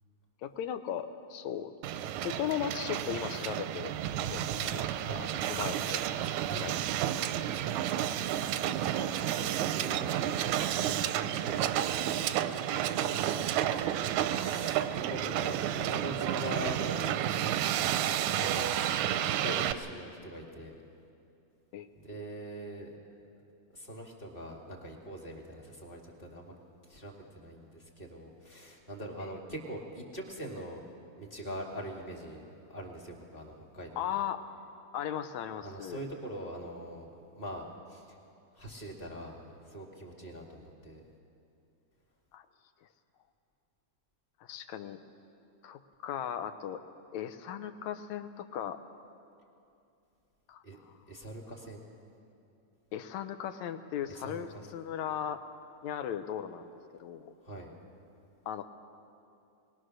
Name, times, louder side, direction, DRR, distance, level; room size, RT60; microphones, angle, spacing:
voice 1, 0.4-6.0 6.5-6.8 7.2-7.4 21.7-21.9 29.2-29.3 34.0-34.4 34.9-36.0 42.3-42.4 44.4-45.0 45.6-46.8 47.1-48.8 50.5-50.6 52.9-55.4 55.8-56.7 57.0-57.3 58.5-58.7, left 9 dB, 80° left, 9 dB, 2.1 m, -37 dB
Hiss, 1.8-19.7, right 11 dB, 90° right, 2.1 m, -31 dB
voice 2, 8.5-12.1 12.7-17.2 17.7-18.7 19.2-20.7 21.9-22.9 23.4-26.5 26.9-30.8 31.2-32.4 32.7-34.2 35.6-37.1 37.3-38.2 38.5-41.0 50.6-50.8 51.1-51.9 54.1-54.6 57.4-57.7, equal, 20° left, 0 dB, 2.0 m, -43 dB
21.0 x 20.5 x 6.4 m, 2.6 s
omnidirectional pair, 3.4 m